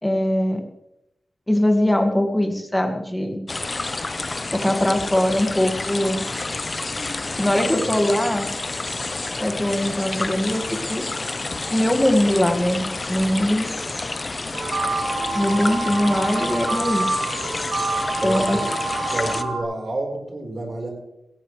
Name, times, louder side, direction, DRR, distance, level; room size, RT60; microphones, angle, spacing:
voice 1, 0.0-0.6 1.5-3.4 4.5-6.2 7.4-8.5 9.4-10.6 10.9-11.0 11.7-13.7 15.3-17.2 18.2-18.6, left 1 dB, 10° left, 4 dB, 2.0 m, -21 dB
sound 1, 3.5-19.4, left 3 dB, 35° left, 0.9 m, -29 dB
voice 2, 7.5-8.0 18.2-18.7 19.1-20.9, right 2 dB, 45° right, 1 dB, 4.5 m, -29 dB
sound 2, 14.5-19.6, right 3 dB, 65° right, 4.3 m, -27 dB
17.5 x 16.5 x 3.3 m, 0.86 s
wide cardioid pair, 95°, 0 cm